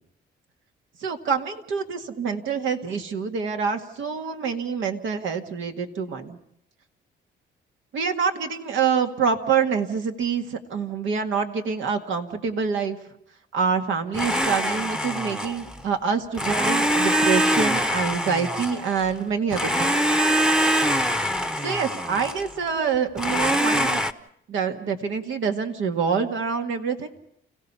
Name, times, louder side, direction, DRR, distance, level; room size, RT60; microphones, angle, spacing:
voice 1, 1.0-6.4 7.9-13.0 13.5-20.0 21.6-24.0 24.5-27.1, right 6 dB, 80° right, 5 dB, 1.9 m, -26 dB
Domestic sounds home sounds, 14.1-15.8 16.3-19.1 19.5-22.5 23.2-24.1, equal, 5° right, 0.9 m, -23 dB
29.5 x 16.0 x 5.6 m, 0.73 s
cardioid pair, 90°, 20 cm